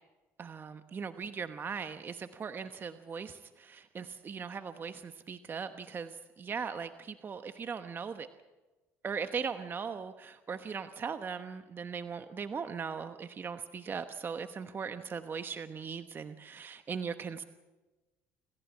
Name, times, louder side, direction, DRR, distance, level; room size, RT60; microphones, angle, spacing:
voice 1, 0.4-8.3 9.0-17.4, right 6 dB, 35° right, 9 dB, 1.1 m, -39 dB
27.0 x 15.0 x 8.5 m, 1.2 s
supercardioid pair, 90°, 6 cm